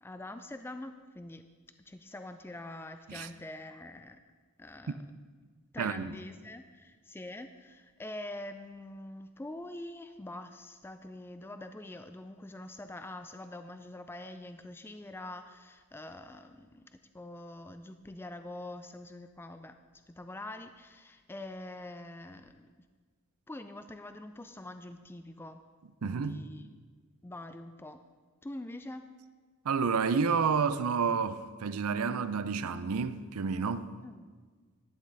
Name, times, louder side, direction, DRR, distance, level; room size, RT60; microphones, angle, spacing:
voice 1, 0.0-1.4 1.9-4.2 4.6-5.1 5.7-16.8 17.1-19.8 20.1-22.7 23.5-25.6 26.0-26.7 27.2-28.0 28.4-29.0 34.0-34.3, left 1 dB, 10° left, 0.3 m, -45 dB
voice 2, 5.8-6.1 26.0-26.4 29.6-33.9, right 5 dB, 80° right, 0.5 m, -30 dB
11.5 x 8.6 x 4.0 m
head